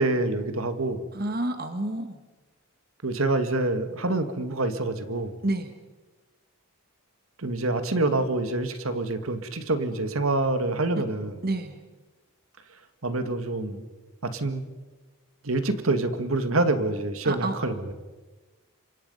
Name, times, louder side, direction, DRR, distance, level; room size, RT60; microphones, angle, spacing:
voice 1, 0.0-1.0 3.0-5.4 7.4-11.3 13.0-13.9 14.2-14.6 15.4-17.9, right 2 dB, 75° right, 9 dB, 1.8 m, -26 dB
voice 2, 1.1-2.2 5.4-5.7 11.0-11.1 11.4-11.8 17.2-17.6, right 2 dB, 45° right, 8 dB, 1.4 m, -29 dB
28.0 x 25.0 x 5.5 m, 1.2 s
head